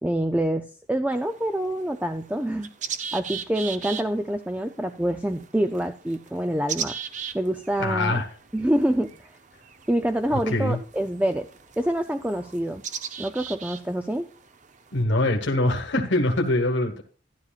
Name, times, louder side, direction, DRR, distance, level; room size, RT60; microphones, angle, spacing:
voice 1, 0.0-2.7 3.1-7.0 7.3-8.2 8.5-9.3 9.9-11.5 11.8-12.8 13.2-14.3, right 1 dB, 5° right, 7 dB, 0.4 m, -26 dB
sound 1, 1.1-15.0, right 7 dB, 40° right, 0.7 m, -39 dB
voice 2, 7.8-8.3 10.3-10.8 14.9-17.0, left 1 dB, 70° left, 3 dB, 1.4 m, -23 dB
12.5 x 11.0 x 2.4 m, 0.38 s
head